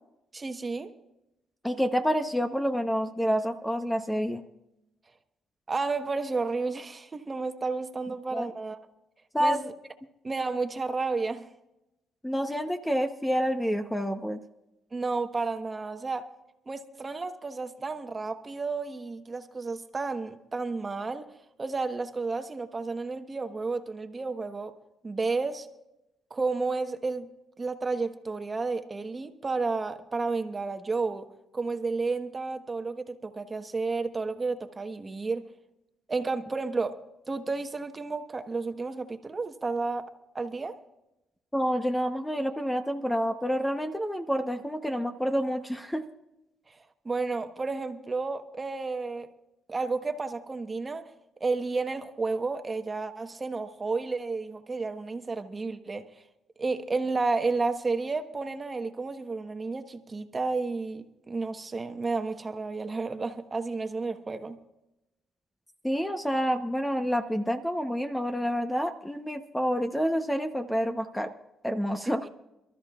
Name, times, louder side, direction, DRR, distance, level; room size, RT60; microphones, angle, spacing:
voice 1, 0.3-0.9 5.7-8.8 9.4-9.7 10.2-11.5 14.9-16.3 16.7-21.3 21.6-24.7 25.0-25.7 26.3-27.3 27.6-31.3 31.5-35.4 36.1-37.0 37.3-40.1 40.3-40.8 46.7-46.8 47.0-49.3 49.7-51.1 51.4-56.2 56.6-64.6, right 3 dB, 30° right, 1.2 m, -31 dB
voice 2, 1.6-4.4 8.3-8.5 9.3-9.6 12.2-14.4 41.5-46.0 65.8-71.3 71.6-72.3, equal, 5° left, 0.9 m, -28 dB
28.5 x 13.5 x 2.4 m
cardioid pair, 90°, 0 cm